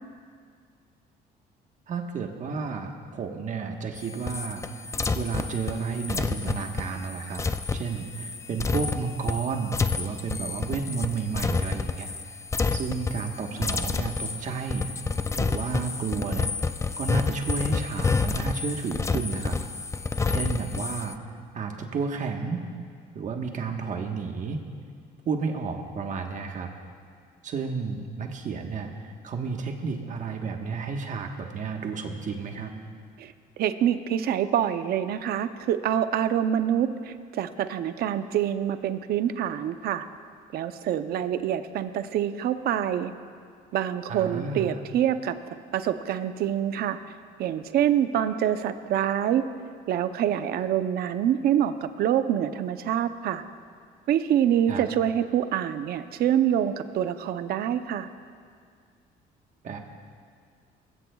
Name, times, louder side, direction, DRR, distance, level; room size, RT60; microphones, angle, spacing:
voice 1, 1.9-7.4 7.7-12.1 12.7-14.9 15.4-16.6 17.0-19.6 20.3-21.2 21.5-22.6 23.1-24.6 25.2-26.7 27.4-32.7 44.1-44.7 54.7-54.8 59.6-59.9, right 5 dB, 50° right, 3 dB, 1.3 m, -32 dB
sound 1, 4.0-12.2 12.5-13.3 13.6-21.1, left 4 dB, 15° left, 0.4 m, -29 dB
voice 2, 33.2-40.1 40.5-43.1 43.7-45.4 45.7-47.0 47.4-49.5 49.9-53.4 54.1-58.1, right 10 dB, 65° right, 10 dB, 0.7 m, -26 dB
21.5 x 15.5 x 2.3 m, 2.1 s
cardioid pair, 110°, 17 cm